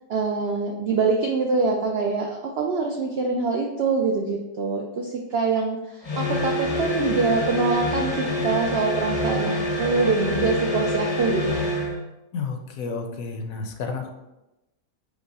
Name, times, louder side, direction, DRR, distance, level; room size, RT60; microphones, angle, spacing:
voice 1, 0.1-11.6, right 4 dB, 75° right, 1 dB, 0.5 m, -24 dB
sound 1, 6.0-12.0, left 1 dB, 30° left, 0.6 m, -26 dB
voice 2, 12.3-14.1, left 4 dB, 75° left, 5 dB, 1.0 m, -31 dB
5.3 x 2.1 x 4.7 m, 0.96 s
omnidirectional pair, 1.6 m